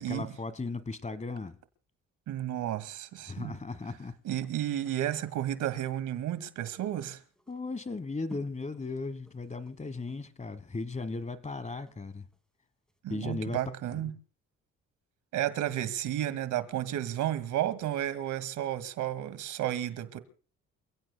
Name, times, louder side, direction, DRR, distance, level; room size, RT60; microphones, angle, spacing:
voice 1, 0.0-1.6 3.2-4.1 7.5-12.3 13.1-13.6 13.9-14.2, left 3 dB, 25° left, 1.3 m, -37 dB
voice 2, 2.3-3.5 4.2-7.2 13.0-14.1 15.3-20.2, right 12 dB, 80° right, 2.0 m, -32 dB
sound 1, 4.0-12.5 12.9-13.0, left 1 dB, ahead, 3.5 m, -56 dB
28.5 x 16.5 x 2.2 m
cardioid pair, 90°, 30 cm